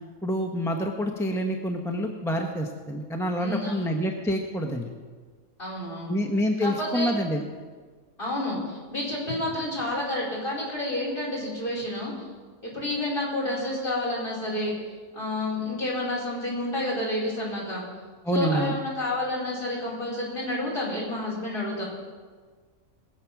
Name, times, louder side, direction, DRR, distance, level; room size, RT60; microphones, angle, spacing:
voice 1, 0.2-4.9 6.1-7.4 18.2-18.7, equal, ahead, 1 dB, 0.8 m, -27 dB
voice 2, 3.4-3.7 5.6-6.2 6.6-7.2 8.2-12.1 12.6-14.7 15.1-17.8 18.3-21.8, left 1 dB, 35° left, -6 dB, 4.7 m, -29 dB
21.0 x 7.6 x 5.9 m, 1.5 s
omnidirectional pair, 1.5 m